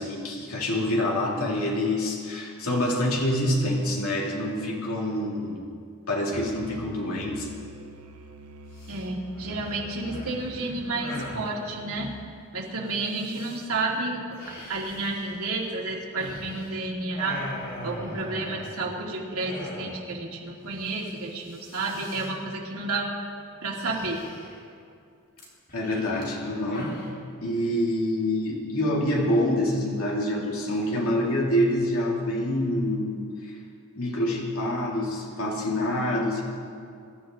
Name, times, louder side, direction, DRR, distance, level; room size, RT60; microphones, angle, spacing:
voice 1, 0.0-5.6 6.1-7.5 25.7-26.9 27.4-33.5 34.0-36.4, left 1 dB, 70° left, -3 dB, 2.8 m, -26 dB
Musical instrument, 6.3-12.0, equal, 75° right, 1.2 m, -44 dB
sound 1, 8.7-9.0 9.4-11.5 13.0-13.6 14.3-16.8 17.1-19.0 19.4-20.2 20.5-20.6 20.8-21.1 21.4-22.3 23.8-24.7 25.4-27.1, left 1 dB, 45° left, 3.4 m, -41 dB
voice 2, 8.9-12.1 12.5-14.4 14.7-17.4 17.8-23.1 23.6-24.2, right 2 dB, 90° right, -2 dB, 2.7 m, -31 dB
23.5 x 12.5 x 3.8 m, 2.4 s
head